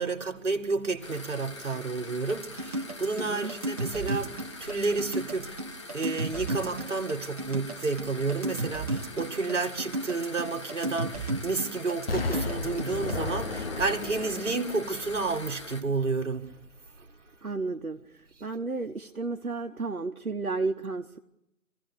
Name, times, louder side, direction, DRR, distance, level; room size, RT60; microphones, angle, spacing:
voice 1, 0.0-16.6, right 3 dB, 55° right, 2.2 m, -31 dB
sound 1, 1.0-15.8, left 2 dB, 20° left, 1.2 m, -44 dB
sound 2, 2.3-13.2, right 2 dB, 25° right, 1.3 m, -33 dB
voice 2, 3.2-3.5 17.4-21.2, right 3 dB, 75° right, 1.4 m, -33 dB
Explosion, 12.1-16.0 16.5-16.6, left 3 dB, 40° left, 1.4 m, -34 dB
26.0 x 16.0 x 10.0 m
figure-of-eight pair, 155°, 43 cm